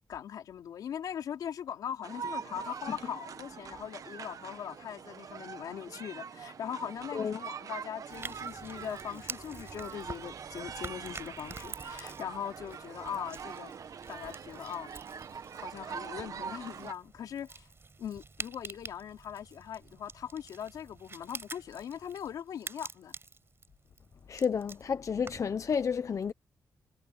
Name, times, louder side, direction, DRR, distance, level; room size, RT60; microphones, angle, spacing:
voice 1, 0.1-13.7 14.1-14.9 15.5-17.7 18.0-23.1, left 9 dB, 85° left, 3.3 m, -40 dB
sound 1, 2.0-16.9, right 6 dB, 65° right, 1.5 m, -43 dB
sound 2, 8.1-25.6, right 4 dB, 40° right, 5.0 m, -47 dB
voice 2, 24.3-26.3, left 6 dB, 55° left, 0.8 m, -31 dB
cardioid pair, 60°, 6 cm